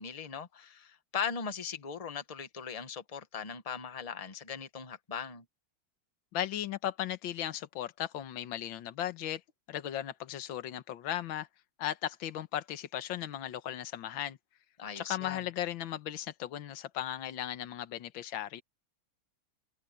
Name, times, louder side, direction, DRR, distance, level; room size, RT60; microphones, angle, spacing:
voice 1, 0.0-5.4 14.8-15.5, left 6 dB, 25° left, 0.9 m, -39 dB
voice 2, 6.3-9.4 9.7-11.5 11.8-14.4 14.9-18.6, left 11 dB, 70° left, 1.8 m, -36 dB
open air
omnidirectional pair, 2.2 m